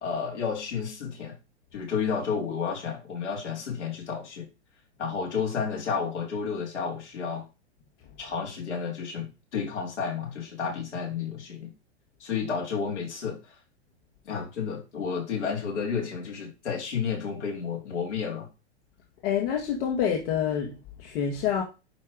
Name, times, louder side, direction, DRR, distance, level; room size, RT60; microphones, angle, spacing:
voice 1, 0.0-1.4 1.7-4.5 5.0-7.5 8.2-11.7 12.2-13.5 14.2-18.5, left 6 dB, 80° left, 3.4 m, -31 dB
voice 2, 19.2-20.7 21.0-21.6, left 8 dB, 55° left, 2.0 m, -27 dB
10.0 x 3.7 x 5.0 m
hypercardioid pair, 100°, 34 cm